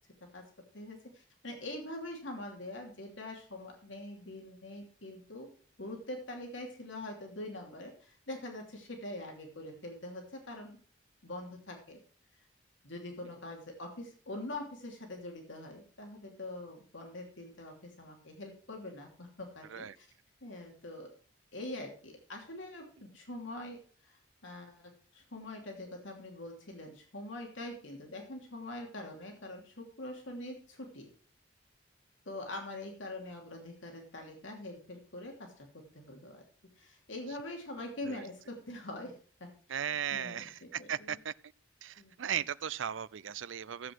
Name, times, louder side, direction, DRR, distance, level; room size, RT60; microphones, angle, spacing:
voice 1, 0.7-5.5 5.8-10.8 11.2-12.0 12.8-20.1 20.4-21.1 21.5-31.1 32.3-36.4 36.8-39.8 40.1-41.2 42.0-42.1, left 1 dB, 80° left, 2.8 m, -44 dB
voice 2, 39.7-41.3 41.8-43.9, right 9 dB, 80° right, 0.5 m, -37 dB
15.0 x 8.0 x 4.6 m
head